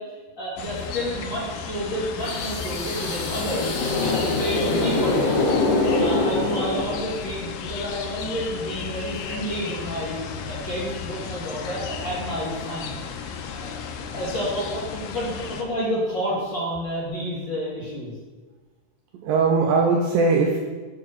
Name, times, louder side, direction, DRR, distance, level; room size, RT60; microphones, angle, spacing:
voice 1, 0.0-5.6 6.0-10.2 10.5-13.0 13.5-13.8 14.1-18.1, equal, 35° left, -9 dB, 2.0 m, -30 dB
sound 1, 0.6-15.6, left 7 dB, 85° left, 2.0 m, -34 dB
sound 2, 2.2-7.3, left 2 dB, 60° left, 1.9 m, -24 dB
voice 2, 5.8-6.1 19.2-20.6, right 4 dB, 85° right, 0 dB, 2.0 m, -21 dB
7.1 x 4.8 x 6.1 m, 1.3 s
omnidirectional pair, 4.7 m